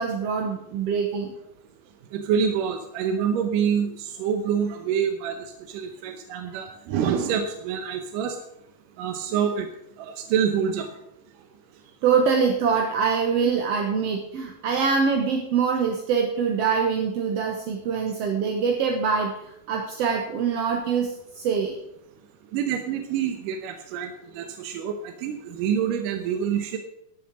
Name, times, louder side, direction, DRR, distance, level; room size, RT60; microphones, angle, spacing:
voice 1, 0.0-1.3 12.0-19.3 19.7-21.8, right 6 dB, 65° right, 2 dB, 1.7 m, -24 dB
voice 2, 2.1-5.4 5.7-8.4 9.0-9.7 10.0-10.9 22.5-26.8, right 7 dB, 80° right, 6 dB, 2.5 m, -26 dB
13.0 x 7.1 x 6.1 m, 0.77 s
omnidirectional pair, 3.8 m